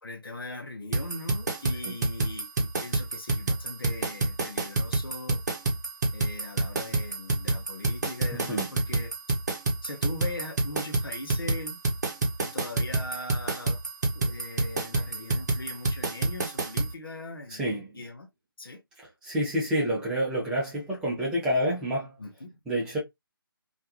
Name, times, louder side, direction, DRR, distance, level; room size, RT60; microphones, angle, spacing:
voice 1, 0.0-5.4 6.1-9.1 9.8-11.8 12.4-13.8 14.1-18.3 18.6-18.8 22.2-22.6, left 2 dB, 70° left, 0.8 m, -40 dB
sound 1, 0.9-16.9, right 2 dB, 50° right, 0.7 m, -28 dB
voice 2, 8.3-8.7 17.5-18.0 19.2-22.2 22.7-23.0, equal, 5° right, 0.6 m, -28 dB
2.5 x 2.2 x 2.7 m
figure-of-eight pair, 150°, 12 cm